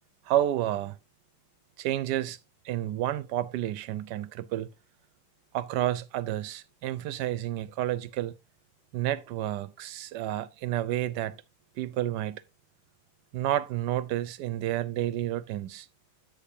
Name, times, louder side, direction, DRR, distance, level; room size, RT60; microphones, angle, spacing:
voice 1, 0.3-1.0 1.8-2.4 2.6-4.7 5.5-8.3 8.9-11.4 11.8-12.4 13.3-15.9, right 13 dB, 90° right, 1.2 m, -30 dB
8.6 x 8.4 x 2.7 m
omnidirectional pair, 1.8 m